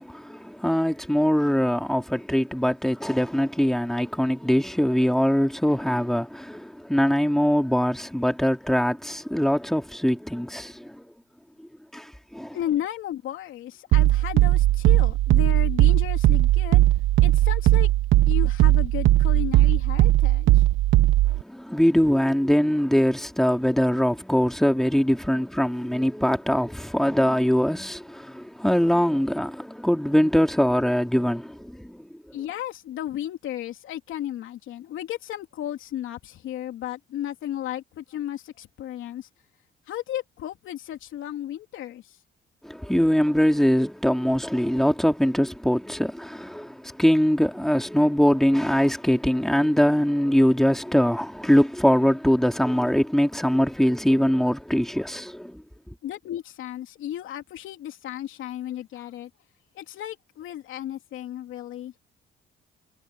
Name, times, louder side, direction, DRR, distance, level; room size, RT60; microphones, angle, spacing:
voice 1, 0.0-11.0 11.9-12.1 12.3-12.6 21.4-32.0 42.6-55.6, equal, ahead, 3.0 m, -22 dB
voice 2, 12.5-16.8 17.2-17.9 18.3-20.6 32.3-39.3 39.9-42.2 56.0-59.3 59.7-62.0, left 12 dB, 85° left, 3.2 m, -34 dB
sound 1, 13.9-21.4, right 15 dB, 85° right, 1.0 m, -18 dB
cardioid pair, 90°, 20 cm